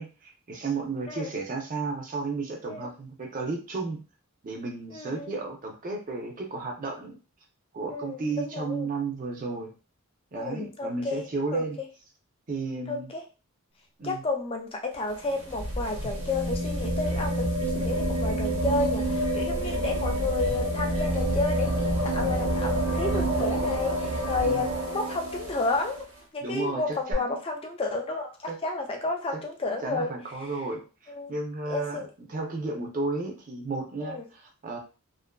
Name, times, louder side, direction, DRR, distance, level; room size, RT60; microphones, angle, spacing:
voice 1, 0.0-4.0 4.4-7.2 7.7-9.7 10.3-11.8 12.5-13.1 14.0-14.2 24.4-24.7 26.4-27.3 28.5-28.6 29.3-29.4 29.8-34.8, right 3 dB, 35° right, 2 dB, 0.5 m, -33 dB
voice 2, 4.9-5.3 7.9-8.9 10.3-11.3 11.5-11.6 12.9-13.2 14.0-26.0 26.3-30.1 31.1-31.3 31.7-32.1 34.0-34.2, left 3 dB, 25° left, 3 dB, 0.4 m, -31 dB
sound 1, 14.9-25.9 27.1-27.2, right 1 dB, 65° right, 0.9 m, -28 dB
2.5 x 2.5 x 2.2 m, 0.32 s
head